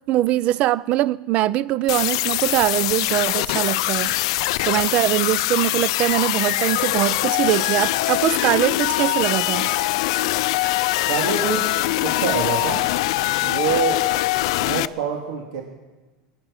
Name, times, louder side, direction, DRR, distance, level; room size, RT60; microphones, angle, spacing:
voice 1, 0.1-4.1 4.6-9.7, right 14 dB, 45° right, 0.4 m, -22 dB
sound 1, 1.9-14.9, left 18 dB, 75° left, 0.4 m, -23 dB
sound 2, 3.1-13.1, left 15 dB, 50° left, 0.9 m, -35 dB
voice 2, 10.9-12.8 13.4-14.0 14.5-15.6, right 5 dB, 80° right, 2.5 m, -26 dB
22.5 x 9.8 x 6.5 m
supercardioid pair, 145°, 3 cm